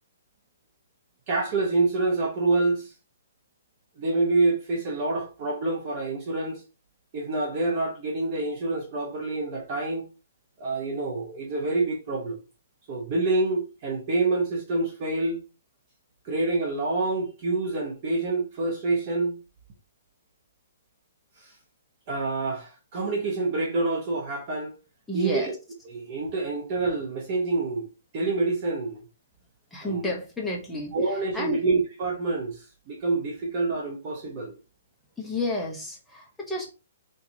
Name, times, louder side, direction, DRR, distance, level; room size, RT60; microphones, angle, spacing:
voice 1, 1.3-2.9 4.0-6.6 7.1-10.1 10.6-12.4 12.9-15.4 16.2-19.4 21.4-21.5 22.1-24.7 25.1-25.5 25.9-27.9 28.1-29.0 29.8-30.1 30.9-34.6, right 3 dB, 30° right, 0.8 m, -27 dB
voice 2, 25.1-25.5 29.7-31.6 35.2-36.7, left 1 dB, 5° left, 0.7 m, -31 dB
3.7 x 2.9 x 2.6 m
hypercardioid pair, 170°, 0 cm